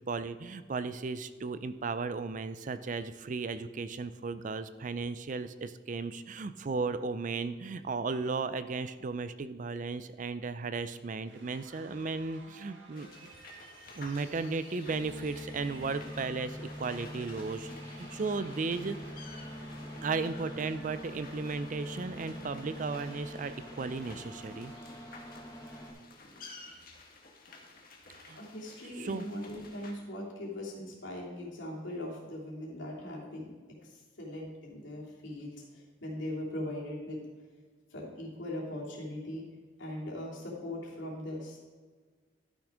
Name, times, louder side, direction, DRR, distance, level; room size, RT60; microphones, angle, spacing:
voice 1, 0.1-13.1 14.0-17.7 18.0-19.0 20.0-24.7 26.5-26.8 28.1-28.4 29.0-29.3, right 4 dB, 40° right, 12 dB, 0.4 m, -35 dB
sound 1, 11.2-25.4, right 2 dB, 80° right, 1.7 m, -56 dB
sound 2, 13.0-29.9, left 3 dB, 50° left, 1.4 m, -53 dB
voice 2, 13.6-13.9 28.3-33.5 33.8-37.2 37.9-39.4 39.8-41.6, left 1 dB, 80° left, -4 dB, 3.0 m, -40 dB
sound 3, 14.9-25.9, equal, 15° left, 1.3 m, -44 dB
12.0 x 6.3 x 5.0 m, 1.5 s
head